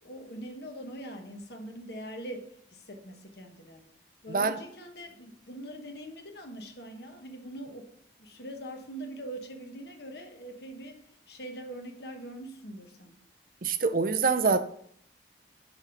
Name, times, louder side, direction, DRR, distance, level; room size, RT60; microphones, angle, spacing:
voice 1, 0.0-3.9 4.2-7.9 8.2-11.0 11.3-13.2, right 1 dB, 60° left, 4 dB, 1.2 m, -42 dB
voice 2, 13.6-14.6, right 4 dB, 50° right, 11 dB, 0.5 m, -25 dB
5.8 x 5.3 x 5.8 m, 0.66 s
head